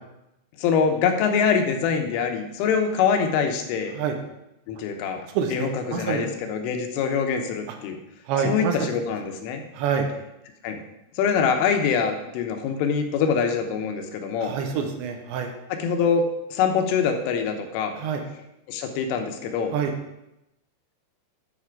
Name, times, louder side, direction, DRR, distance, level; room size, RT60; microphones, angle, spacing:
voice 1, 0.6-3.9 4.7-8.0 8.5-9.6 10.6-10.8 11.2-14.6 15.7-16.3 16.5-18.0 18.7-19.7, left 6 dB, 85° left, 5 dB, 3.5 m, -24 dB
voice 2, 5.3-6.3 8.3-8.9 9.7-10.1 14.4-15.5 17.9-18.2 19.7-19.9, right 6 dB, 75° right, 5 dB, 3.0 m, -26 dB
9.6 x 7.6 x 4.7 m, 0.88 s
omnidirectional pair, 5.6 m